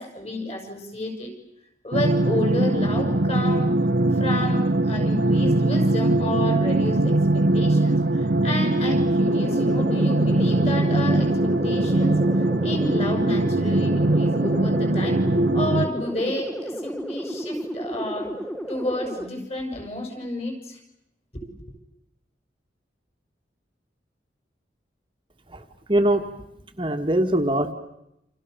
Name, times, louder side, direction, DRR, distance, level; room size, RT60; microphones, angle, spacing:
voice 1, 0.0-1.3 1.8-3.7 4.1-12.2 12.6-15.2 15.5-18.3 18.7-20.8 21.3-21.5, left 1 dB, 35° left, 4 dB, 6.9 m, -31 dB
sound 1, 1.9-15.9, right 2 dB, 60° right, 1.0 m, -21 dB
sound 2, 9.3-19.3, equal, 5° left, 1.5 m, -33 dB
voice 2, 25.9-26.2 26.8-27.7, right 1 dB, 25° right, 6 dB, 1.7 m, -21 dB
29.0 x 28.5 x 6.9 m, 0.85 s
head